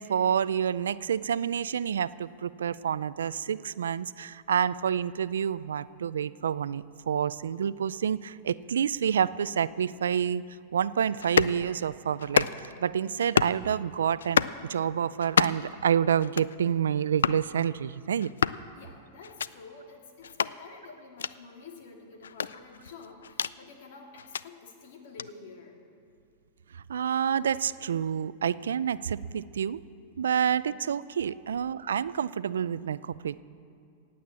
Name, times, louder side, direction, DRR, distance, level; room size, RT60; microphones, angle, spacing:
voice 1, 0.0-10.4 10.7-14.4 14.7-18.3 26.9-29.8 30.2-33.4, right 8 dB, 85° right, 17 dB, 0.4 m, -28 dB
sound 1, 11.2-11.6 12.2-12.8 13.2-13.6 14.2-14.6 15.2-15.7 16.2-16.6 17.2-17.4 18.2-18.6 19.2-19.5 20.2-20.5 21.2-21.3 22.2-23.6 24.2-24.4 25.2-25.3, left 7 dB, 90° left, 0.3 m, -28 dB
voice 2, 18.7-25.7 30.6-30.8 31.5-31.8, left 4 dB, 70° left, 2 dB, 2.6 m, -49 dB
18.0 x 8.5 x 7.4 m, 2.4 s
hypercardioid pair, 120°, 0 cm